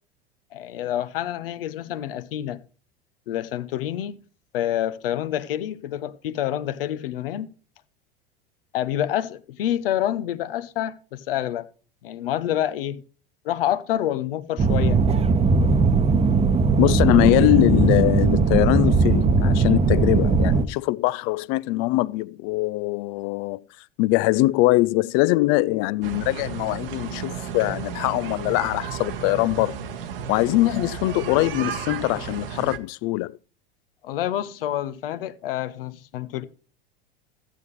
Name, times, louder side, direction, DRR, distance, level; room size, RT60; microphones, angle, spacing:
voice 1, 0.5-2.6 3.3-4.2 4.5-7.5 8.7-11.7 12.0-13.0 13.4-15.0 34.0-36.4, left 12 dB, 70° left, 0.8 m, -27 dB
sound 1, 14.6-20.7, right 4 dB, 20° right, 0.9 m, -19 dB
voice 2, 16.8-23.6 24.0-29.8 30.3-33.3, left 19 dB, 50° left, 0.4 m, -22 dB
sound 2, 26.0-32.8, right 7 dB, 70° right, 1.2 m, -33 dB
14.5 x 8.0 x 3.1 m
hypercardioid pair, 85°, 29 cm